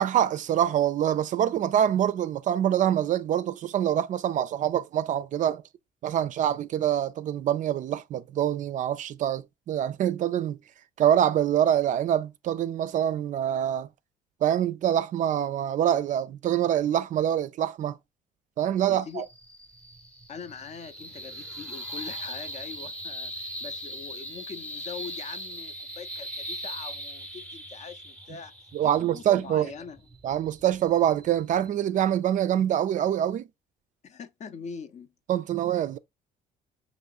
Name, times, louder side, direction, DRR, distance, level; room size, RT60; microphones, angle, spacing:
voice 1, 0.0-5.6 6.0-10.6 11.0-13.9 14.4-18.0 18.6-19.2 28.7-29.7 30.2-33.5 35.3-36.0, right 10 dB, 50° right, 0.4 m, -25 dB
voice 2, 18.9-19.3 20.3-28.5 28.8-30.0 34.0-35.1, left 5 dB, 45° left, 0.5 m, -42 dB
sound 1, 19.1-31.7, equal, 5° left, 0.7 m, -40 dB
5.5 x 3.0 x 2.4 m
cardioid pair, 110°, 17 cm